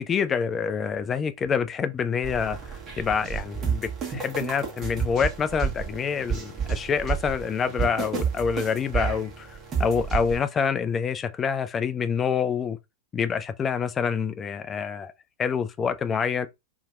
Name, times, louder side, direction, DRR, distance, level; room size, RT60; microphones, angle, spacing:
voice 1, 0.0-12.8 13.1-15.1 15.4-16.5, left 6 dB, 20° left, 0.3 m, -27 dB
sound 1, 2.2-10.4, right 6 dB, 30° right, 1.1 m, -31 dB
2.8 x 2.7 x 2.3 m
figure-of-eight pair, 90°, 0 cm